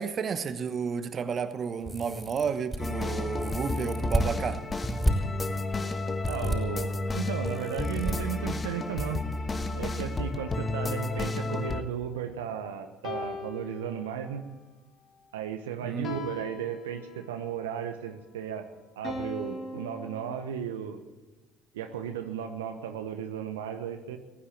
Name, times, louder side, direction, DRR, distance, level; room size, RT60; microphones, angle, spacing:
voice 1, 0.0-4.6 15.8-16.1, right 6 dB, 45° right, 1.2 m, -32 dB
sound 1, 1.8-2.8 3.4-4.3 4.8-5.1 6.2-6.6 7.4-8.1 9.3-9.7 9.9-10.0 11.2-11.3 11.7-11.8, right 1 dB, 10° right, 5.4 m, -31 dB
sound 2, 2.8-11.8, left 2 dB, 30° left, 1.2 m, -31 dB
voice 2, 6.3-9.2 9.7-14.5 15.3-18.7 19.0-21.0 21.7-24.2, right 8 dB, 90° right, 1.0 m, -35 dB
sound 3, 10.7-12.5 13.0-14.5 16.0-17.5 19.0-20.5, left 2 dB, 50° left, 2.2 m, -41 dB
15.5 x 10.0 x 8.6 m
hypercardioid pair, 65°, 0 cm